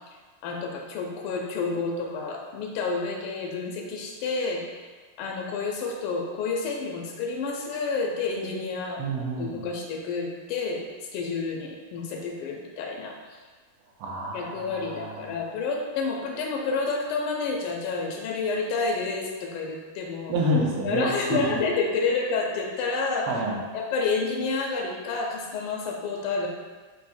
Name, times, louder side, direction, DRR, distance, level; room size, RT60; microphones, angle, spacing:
voice 1, 0.4-4.6 5.2-9.0 9.4-10.8 11.1-13.1 14.3-20.3 20.8-23.3 23.7-26.5, left 4 dB, 90° left, 0 dB, 1.5 m, -29 dB
voice 2, 9.0-9.6 14.0-15.4 20.3-21.4 23.3-23.6, right 1 dB, 85° right, -2 dB, 1.7 m, -28 dB
4.8 x 2.1 x 4.1 m, 1.4 s
omnidirectional pair, 2.4 m